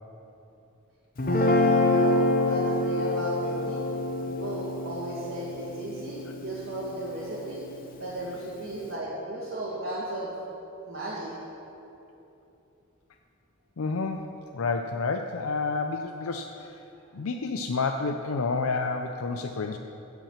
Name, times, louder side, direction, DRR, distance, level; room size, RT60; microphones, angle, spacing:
Guitar, 1.2-7.5, left 2 dB, 40° left, 0.7 m, -26 dB
voice 1, 1.2-3.9 4.3-7.6 8.0-10.3 10.9-11.3, right 1 dB, 50° right, -8 dB, 2.3 m, -35 dB
voice 2, 13.8-14.3 14.5-16.8 17.1-19.8, left 4 dB, 85° left, 5 dB, 0.6 m, -29 dB
15.5 x 6.0 x 7.3 m, 2.9 s
head